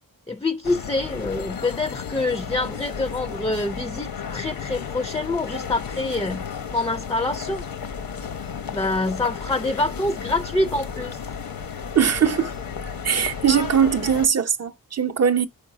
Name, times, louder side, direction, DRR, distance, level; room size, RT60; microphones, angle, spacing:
voice 1, 0.3-6.4 6.7-7.6 8.7-11.2, left 2 dB, 10° left, 0.5 m, -26 dB
sound 1, 0.6-14.3, left 6 dB, 80° left, 1.0 m, -33 dB
voice 2, 11.9-12.5 13.0-15.5, right 8 dB, 45° right, 0.7 m, -20 dB
5.2 x 4.7 x 3.9 m
wide cardioid pair, 90°, 35 cm